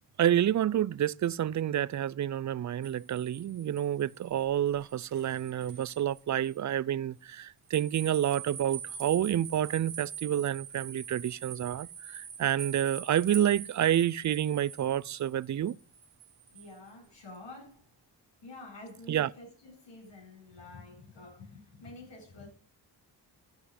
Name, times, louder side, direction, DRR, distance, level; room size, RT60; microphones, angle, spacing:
voice 1, 0.2-15.8 19.1-19.3, right 11 dB, 45° right, 0.4 m, -29 dB
sound 1, 2.8-6.0 6.4-6.5 7.7-16.7, right 8 dB, 75° right, 1.7 m, -44 dB
voice 2, 16.5-17.8 18.4-22.5, left 2 dB, 85° left, 7.7 m, -49 dB
12.5 x 5.6 x 7.8 m
cardioid pair, 100°, 42 cm